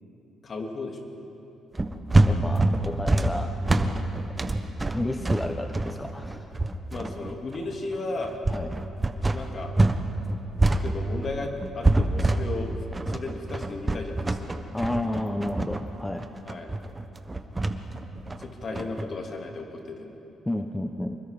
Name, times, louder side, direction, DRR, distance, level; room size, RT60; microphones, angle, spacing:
voice 1, 0.4-1.2 6.9-8.4 9.3-9.8 10.7-12.8 13.1-14.5 16.5-16.7 18.4-20.2, left 3 dB, 45° left, 2 dB, 2.7 m, -35 dB
sound 1, 1.7-10.0 10.3-19.0, right 2 dB, 20° right, 1.2 m, -25 dB
voice 2, 2.3-3.6 4.9-6.5 8.5-8.8 14.7-16.3 20.4-21.2, left 1 dB, 10° left, 6 dB, 0.9 m, -31 dB
25.5 x 22.0 x 5.3 m, 2.9 s
cardioid pair, 90°, 0 cm